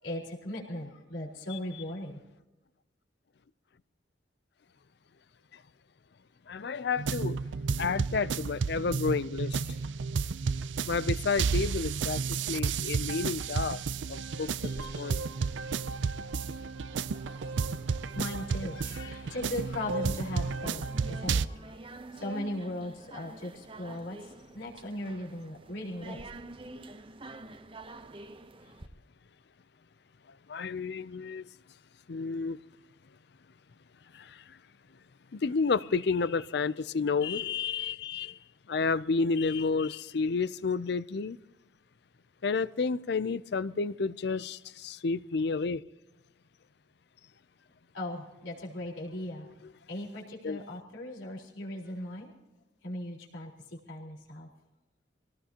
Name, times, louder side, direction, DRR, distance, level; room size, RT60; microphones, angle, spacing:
voice 1, 0.0-2.2 17.8-21.8 22.1-26.2 47.9-49.5 49.9-52.3 52.8-54.5, left 1 dB, 85° left, 4.4 m, -38 dB
voice 2, 6.5-7.4 7.8-9.6 10.9-13.8 14.1-15.2 30.5-31.5 32.1-32.6 34.1-34.6 35.3-38.4 38.7-41.4 42.4-45.8 50.4-50.6, left 4 dB, 60° left, 0.5 m, -31 dB
sound 1, 7.0-21.5, right 5 dB, 75° right, 0.5 m, -32 dB
sound 2, 14.6-28.9, right 2 dB, 30° right, 0.8 m, -49 dB
25.0 x 18.0 x 2.9 m
head